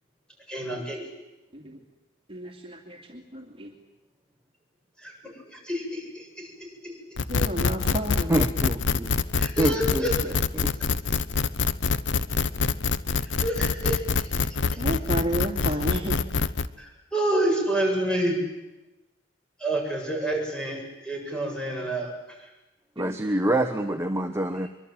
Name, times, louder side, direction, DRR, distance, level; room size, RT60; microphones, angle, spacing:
voice 1, 0.5-1.0 5.0-5.1 5.5-7.0 9.4-10.3 13.4-14.8 16.8-18.4 19.6-22.1, right 1 dB, 5° left, 0 dB, 7.7 m, -29 dB
voice 2, 2.3-3.7 7.3-8.3 14.8-16.2 23.0-23.2, right 1 dB, 30° right, 2 dB, 2.6 m, -32 dB
sound 1, 7.2-16.7, left 5 dB, 90° left, 0.9 m, -25 dB
voice 3, 8.3-9.1 9.6-10.1 10.6-10.7 23.0-24.7, right 1 dB, 15° right, 7 dB, 1.0 m, -26 dB
23.5 x 23.5 x 9.0 m, 1.0 s
head